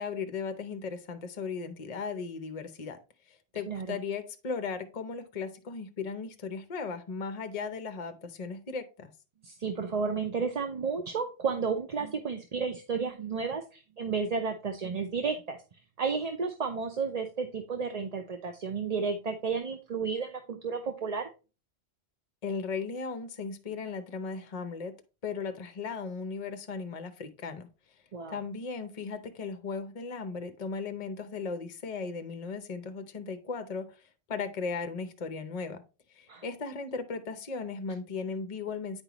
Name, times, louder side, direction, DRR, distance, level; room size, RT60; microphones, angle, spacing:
voice 1, 0.0-3.0 3.3-9.1 22.4-24.9 25.2-27.7 28.3-34.0 34.3-35.8 36.1-39.0, left 5 dB, 40° left, 9 dB, 0.7 m, -36 dB
voice 2, 3.7-4.0 9.4-15.6 16.0-21.3 28.1-28.4 36.3-36.4, right 5 dB, 40° right, 6 dB, 0.7 m, -32 dB
9.0 x 5.4 x 3.0 m, 0.31 s
omnidirectional pair, 1.1 m